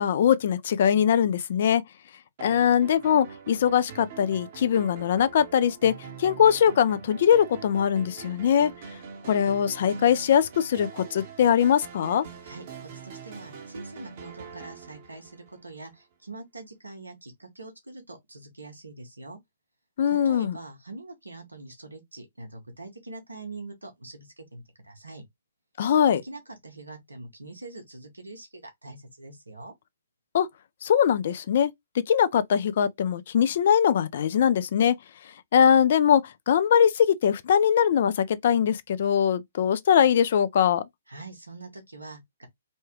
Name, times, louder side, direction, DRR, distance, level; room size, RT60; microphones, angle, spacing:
voice 1, 0.0-1.8 2.4-5.9 6.2-8.7 9.3-12.2 20.0-20.6 25.8-26.2 30.3-30.5 30.8-31.7 32.1-34.9 35.5-40.8, left 8 dB, 55° left, 0.4 m, -22 dB
sound 1, 2.4-15.9, right 6 dB, 45° right, 0.9 m, -43 dB
voice 2, 12.4-19.4 20.1-25.2 26.2-29.7 41.1-42.5, right 2 dB, 90° right, 1.2 m, -43 dB
3.2 x 2.2 x 3.0 m
figure-of-eight pair, 125°, 0 cm